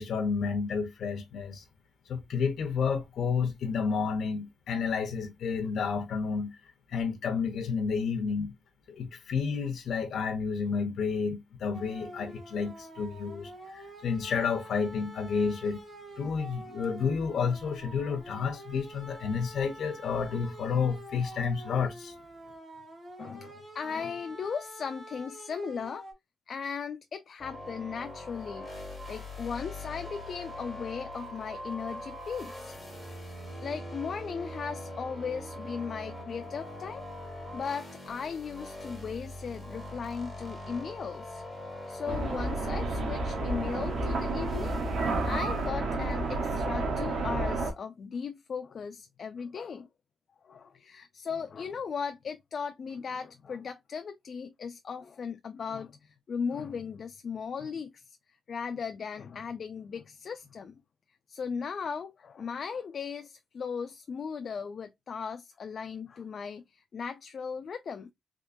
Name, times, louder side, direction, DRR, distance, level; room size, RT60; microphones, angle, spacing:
voice 1, 0.0-1.6 2.1-6.5 6.9-8.5 8.9-15.8 16.2-22.1, left 5 dB, 80° left, 0.7 m, -30 dB
sound 1, 11.7-26.1, right 1 dB, 30° right, 1.5 m, -47 dB
voice 2, 23.2-26.1 26.5-28.7 29.1-32.7 33.6-37.1 37.5-41.4 41.9-44.8 45.2-49.9 50.4-58.2 58.5-60.7 61.3-68.1, left 6 dB, 50° left, 0.3 m, -37 dB
sound 2, 27.4-45.7, left 1 dB, 10° left, 2.2 m, -42 dB
sound 3, 42.1-47.7, right 2 dB, 80° right, 1.1 m, -30 dB
3.6 x 2.9 x 2.5 m
wide cardioid pair, 165°, 0 cm